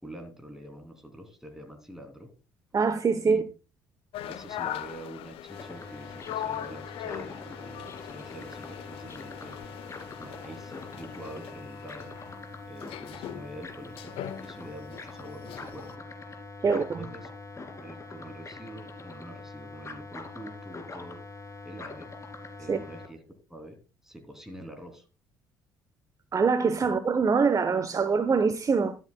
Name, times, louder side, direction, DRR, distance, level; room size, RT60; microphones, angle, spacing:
voice 1, 0.0-2.3 3.2-3.4 4.3-9.6 10.2-12.1 12.7-15.9 16.6-17.3 17.7-21.2 21.6-22.1 22.6-23.2 23.5-25.1 26.8-26.9, right 1 dB, 5° right, 3.2 m, -45 dB
voice 2, 2.7-3.4 16.6-17.0 22.7-22.8 26.3-29.0, right 5 dB, 35° right, 0.9 m, -24 dB
sound 1, 4.1-16.0, left 11 dB, 60° left, 0.7 m, -40 dB
sound 2, 5.5-23.1, left 3 dB, 30° left, 2.6 m, -43 dB
12.5 x 12.0 x 2.3 m
figure-of-eight pair, 50°, 11 cm